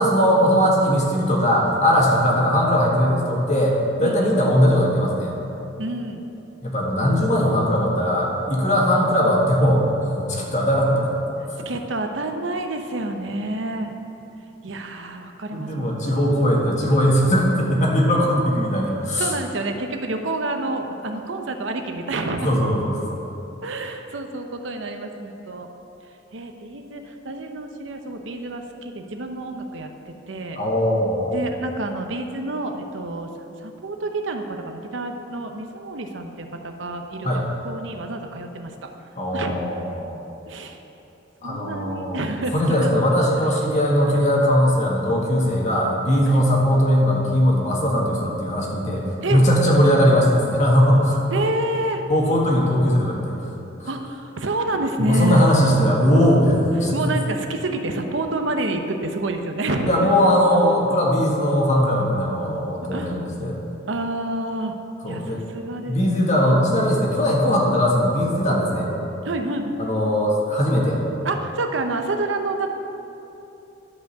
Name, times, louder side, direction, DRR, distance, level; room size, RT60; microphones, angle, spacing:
voice 1, 0.0-5.3 6.6-11.1 15.5-19.3 22.4-23.0 30.6-31.4 37.2-37.4 39.2-40.3 41.4-42.2 42.5-51.3 52.1-53.3 53.8-53.9 55.0-57.1 59.9-63.6 65.0-65.4 65.9-68.9 69.8-71.0, equal, 40° left, -2 dB, 1.7 m, -19 dB
voice 2, 4.0-4.4 5.8-6.2 11.6-13.9 14.6-16.2 19.2-22.5 23.6-25.7 26.3-29.9 30.3-30.6 31.3-33.3 33.6-38.9 39.3-39.5 40.5-40.8 41.4-43.0 46.3-46.5 49.2-49.4 51.3-52.0 53.9-55.5 56.9-60.0 60.9-61.0 62.9-63.2 63.9-64.7 65.1-66.3 69.2-69.8 71.2-72.7, right 2 dB, 80° right, 5 dB, 0.8 m, -28 dB
12.0 x 5.3 x 6.8 m, 2.9 s
head